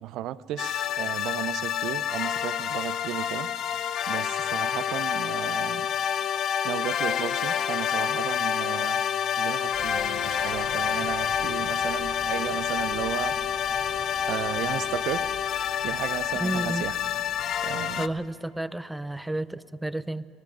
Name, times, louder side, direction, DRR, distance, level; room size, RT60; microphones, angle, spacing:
voice 1, 0.0-3.5 4.1-5.9 6.6-9.0 9.4-13.4 14.3-15.2 15.8-17.0 17.6-18.0, right 13 dB, 65° right, 16 dB, 0.4 m, -34 dB
sound 1, 0.6-18.1, left 9 dB, 55° left, 0.4 m, -28 dB
sound 2, 9.7-18.3, right 5 dB, 45° right, 1.3 m, -46 dB
voice 2, 16.4-16.9 18.0-20.3, right 1 dB, 5° right, 15 dB, 0.4 m, -31 dB
17.0 x 13.0 x 6.0 m, 2.5 s
supercardioid pair, 80°, 0 cm